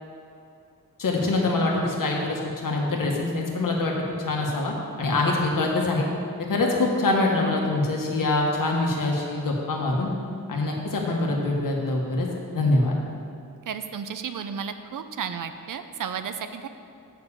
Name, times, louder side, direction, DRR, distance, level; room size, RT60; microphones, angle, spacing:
voice 1, 1.0-3.9 4.2-6.0 6.5-10.1 10.5-12.3 12.5-12.9, left 2 dB, 70° left, -1 dB, 1.4 m, -24 dB
voice 2, 13.7-16.7, right 7 dB, 65° right, 9 dB, 0.5 m, -33 dB
7.0 x 6.0 x 7.0 m, 2.5 s
wide cardioid pair, 175°, 34 cm